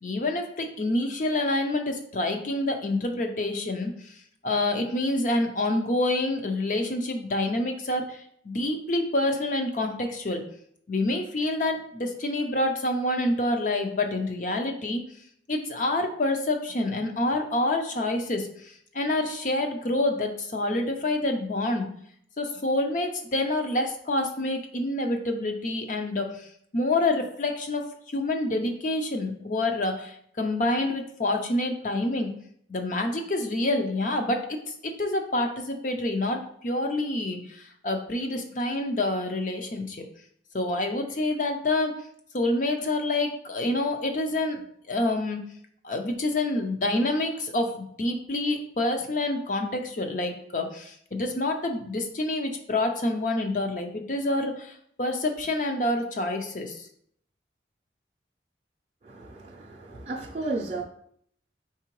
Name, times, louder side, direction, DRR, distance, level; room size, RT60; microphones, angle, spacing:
voice 1, 0.0-3.9 4.4-10.4 10.9-15.0 15.5-21.9 22.4-26.5 26.7-27.8 28.1-32.3 32.7-34.5 34.8-40.0 40.5-42.0 42.3-44.6 44.9-45.4 45.8-56.8, left 2 dB, 45° left, 4 dB, 0.6 m, -27 dB
voice 2, 59.0-60.8, right 2 dB, 35° right, -3 dB, 0.5 m, -34 dB
4.7 x 3.7 x 3.0 m, 0.66 s
head